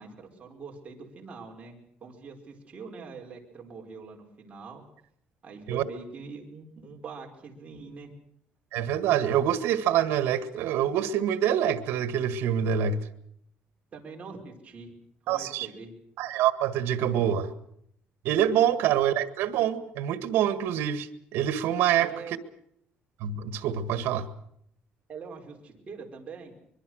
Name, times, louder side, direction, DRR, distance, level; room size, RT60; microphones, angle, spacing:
voice 1, 0.0-1.8 2.0-4.8 5.4-8.1 13.9-14.9 15.2-15.9 17.1-17.2 22.0-22.4 25.1-26.5, right 4 dB, 35° right, 0 dB, 5.0 m, -43 dB
voice 2, 8.7-13.0 15.3-15.7 16.2-17.5 18.2-22.4 23.2-24.3, right 10 dB, 80° right, 12 dB, 1.8 m, -26 dB
24.0 x 23.0 x 6.4 m, 0.71 s
cardioid pair, 130°, 4 cm